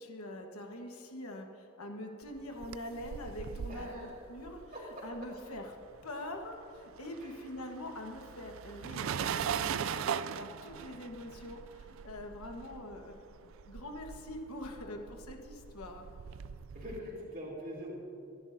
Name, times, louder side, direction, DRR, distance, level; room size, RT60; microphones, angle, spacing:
voice 1, 0.0-5.7 6.0-16.0, left 1 dB, 90° left, 3 dB, 1.2 m, -44 dB
sound 1, 2.4-6.0 6.3-17.0, right 8 dB, 70° right, 0.4 m, -40 dB
voice 2, 3.7-4.2 4.7-5.0 7.2-7.3 16.7-18.0, equal, 40° right, -5 dB, 3.1 m, -43 dB
24.5 x 11.0 x 2.6 m, 2.9 s
head